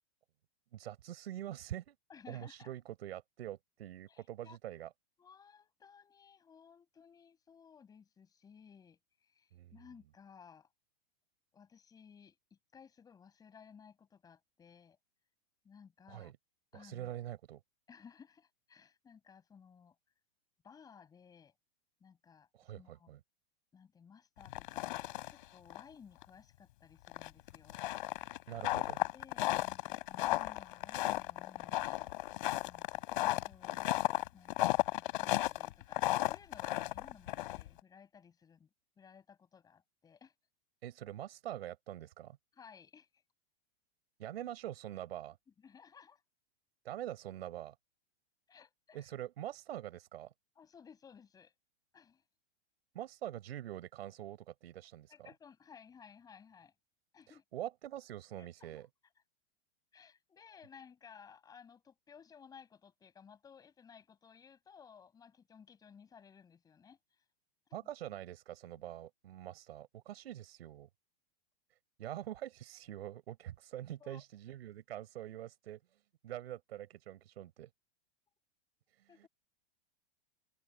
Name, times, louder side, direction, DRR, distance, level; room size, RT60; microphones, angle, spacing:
voice 1, 0.7-1.9 2.3-4.9 9.5-9.8 16.1-16.4 16.7-17.6 22.5-23.2 28.5-29.0 40.8-42.4 44.2-45.4 46.8-47.7 48.9-50.3 52.9-55.3 57.3-58.9 67.7-70.9 72.0-77.7 78.9-79.3, right 12 dB, 70° right, 6.2 m, -45 dB
voice 2, 2.1-2.7 4.1-4.6 5.2-10.7 11.5-15.0 15.6-16.3 16.7-17.1 17.9-19.9 20.6-21.5 22.0-23.1 23.7-27.8 29.1-32.4 32.6-34.6 34.9-38.7 39.0-40.3 42.5-43.2 45.6-46.2 48.5-49.1 50.5-51.5 51.9-52.2 55.1-56.7 57.1-57.4 58.4-58.9 59.9-67.2 67.7-67.9 74.0-74.2 79.1-79.3, left 6 dB, 10° left, 7.0 m, -58 dB
sound 1, 24.4-25.4 25.7-25.8 26.2-26.3 27.1-37.8, left 17 dB, 50° left, 4.6 m, -34 dB
supercardioid pair, 175°, 31 cm